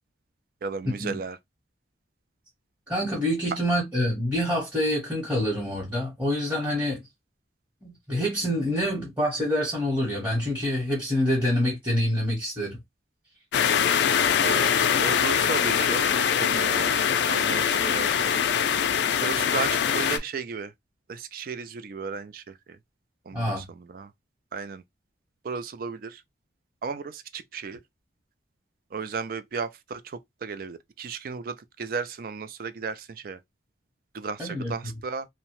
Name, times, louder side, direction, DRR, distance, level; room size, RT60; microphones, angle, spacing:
voice 1, 0.6-1.4 14.4-16.0 16.4-18.3 19.2-20.7 21.1-22.8 23.3-24.1 24.5-24.8 25.4-26.2 26.8-27.8 28.9-33.4 34.1-35.3, right 5 dB, 50° right, 0.3 m, -34 dB
voice 2, 2.9-7.0 7.8-12.8 23.3-23.6 34.4-34.7, equal, 10° right, 0.9 m, -26 dB
sound 1, 13.5-20.2, left 8 dB, 70° left, 0.4 m, -23 dB
2.7 x 2.1 x 2.9 m
head